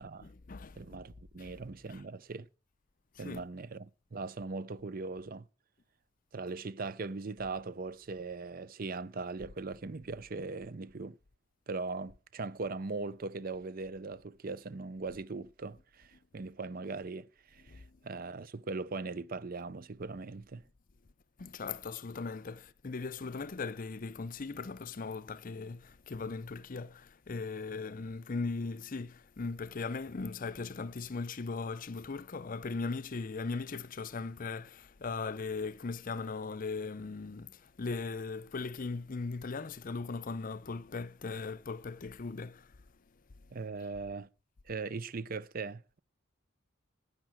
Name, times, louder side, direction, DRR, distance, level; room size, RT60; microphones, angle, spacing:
voice 1, 0.2-1.0 1.4-1.5 1.9-2.0 3.1-3.5 17.7-17.9 21.4-42.8, left 4 dB, 40° left, 0.6 m, -39 dB
voice 2, 0.8-2.5 3.2-5.5 6.3-11.2 11.7-20.6 43.5-44.3 44.7-46.0, right 3 dB, 45° right, 0.5 m, -40 dB
12.0 x 8.9 x 6.2 m
head